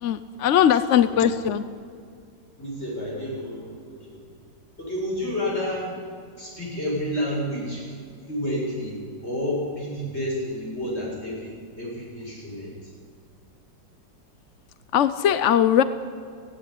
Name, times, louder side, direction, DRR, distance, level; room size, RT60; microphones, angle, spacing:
voice 1, 0.0-1.6 14.9-15.8, left 9 dB, 60° left, 13 dB, 0.7 m, -20 dB
voice 2, 2.6-4.2 4.8-5.9 6.4-8.0 8.3-9.0 9.2-12.7, left 1 dB, 35° left, -4 dB, 7.9 m, -30 dB
17.0 x 16.5 x 9.9 m, 2.2 s
omnidirectional pair, 2.0 m